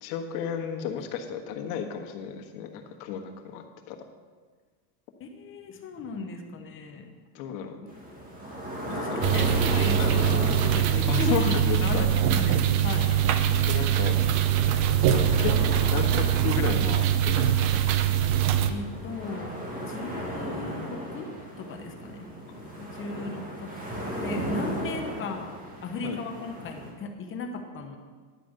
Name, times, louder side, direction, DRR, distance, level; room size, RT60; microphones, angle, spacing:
voice 1, 0.0-4.0 7.3-7.8 8.9-9.4 10.0-10.2 11.1-12.1 13.7-14.1 15.1-15.5 15.9-17.8 22.5-23.2 26.0-26.2, left 8 dB, 60° left, 4 dB, 1.5 m, -33 dB
voice 2, 5.2-7.1 7.8-7.9 8.8-13.1 14.0-14.3 18.7-21.3 21.6-22.3 22.9-25.5 25.8-28.0, left 4 dB, 25° left, 4 dB, 1.0 m, -36 dB
sound 1, 7.9-26.9, equal, 15° right, 1.8 m, -36 dB
sound 2, 9.2-18.7, right 10 dB, 45° right, 0.7 m, -23 dB
11.0 x 5.0 x 7.9 m, 1.5 s
supercardioid pair, 145°, 50 cm